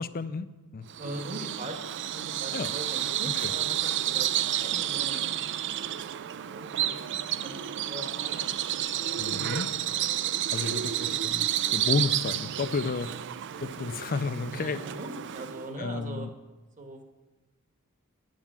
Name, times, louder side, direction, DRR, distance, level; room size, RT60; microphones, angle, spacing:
voice 1, 0.0-0.9 2.5-2.7 3.4-3.5 9.2-9.7 10.5-11.5 11.7-13.1 13.6-14.8 15.8-16.3, left 4 dB, 40° left, 14 dB, 0.5 m, -31 dB
Bird vocalization bird call bird song, 0.9-15.7, right 11 dB, 55° right, 0.4 m, -31 dB
voice 2, 1.0-5.3 5.7-6.1 6.5-7.0 7.4-9.8 10.5-10.8 12.9-13.0 14.5-16.3 16.8-17.0, right 1 dB, 35° right, 5 dB, 1.3 m, -42 dB
9.1 x 8.3 x 7.4 m, 1.2 s
head